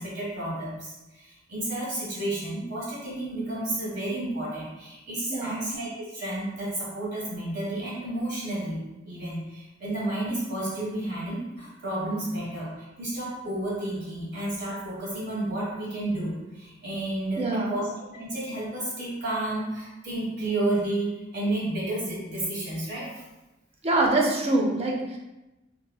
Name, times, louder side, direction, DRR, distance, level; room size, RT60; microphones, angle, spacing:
voice 1, 0.0-23.1, right 1 dB, 60° right, -6 dB, 1.4 m, -31 dB
voice 2, 5.3-5.7 17.4-17.8 23.8-25.2, right 2 dB, 30° right, -1 dB, 0.5 m, -25 dB
3.1 x 3.0 x 2.2 m, 1.0 s
head